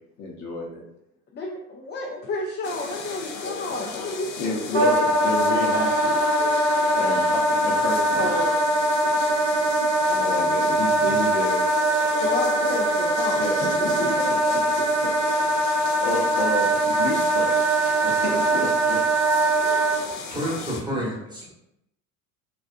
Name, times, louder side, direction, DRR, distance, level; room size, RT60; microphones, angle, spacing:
voice 1, 0.2-0.8 4.3-6.2 7.0-8.6 10.1-11.9 13.2-14.9 15.2-15.6 16.0-17.6 18.0-19.0, left 2 dB, 45° left, -1 dB, 0.8 m, -31 dB
voice 2, 1.4-4.3 4.7-4.9 8.2-8.5 10.1-10.4 12.2-13.4 14.0-14.1, left 2 dB, 25° left, -1 dB, 0.4 m, -31 dB
sound 1, 2.6-20.8, left 5 dB, 80° left, 0.6 m, -36 dB
Wind instrument woodwind instrument, 4.7-20.0, right 1 dB, 85° right, 0.9 m, -22 dB
voice 3, 20.3-21.5, right 1 dB, 10° right, -5 dB, 1.1 m, -30 dB
2.4 x 2.4 x 2.5 m, 0.80 s
hypercardioid pair, 75°, 42 cm